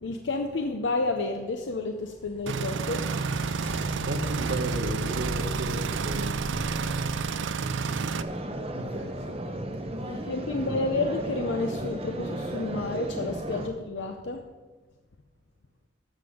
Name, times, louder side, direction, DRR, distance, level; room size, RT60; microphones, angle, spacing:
voice 1, 0.0-3.0 10.1-14.4, left 3 dB, 80° left, 5 dB, 0.6 m, -30 dB
sound 1, 1.8-9.3 12.7-12.8 13.9-14.0, left 2 dB, 30° left, 0.5 m, -40 dB
sound 2, 2.5-8.2, right 5 dB, 90° right, 0.5 m, -30 dB
voice 2, 3.9-7.1 7.6-8.3 8.7-9.4 10.6-10.9, right 1 dB, 65° right, 3 dB, 0.9 m, -36 dB
sound 3, 8.2-13.7, right 1 dB, 30° right, 0.8 m, -34 dB
13.0 x 7.0 x 5.0 m, 1.3 s
head